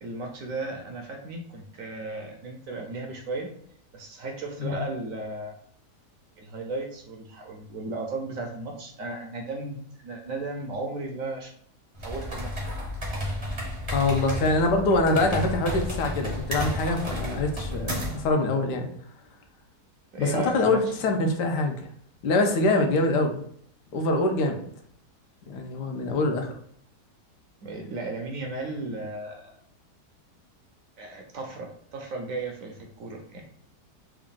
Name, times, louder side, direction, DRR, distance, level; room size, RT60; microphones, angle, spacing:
voice 1, 0.0-3.5 3.9-5.6 6.4-11.5 12.0-12.8 20.1-20.8 27.6-29.5 31.0-33.4, right 3 dB, 65° right, 2 dB, 0.9 m, -35 dB
sound 1, 11.9-18.3, left 1 dB, 35° right, 0.5 m, -32 dB
voice 2, 13.9-18.9 20.2-21.9 22.2-23.4 23.9-24.6 25.5-26.5, left 2 dB, 85° left, 4 dB, 1.3 m, -24 dB
3.6 x 2.4 x 3.6 m, 0.66 s
omnidirectional pair, 1.8 m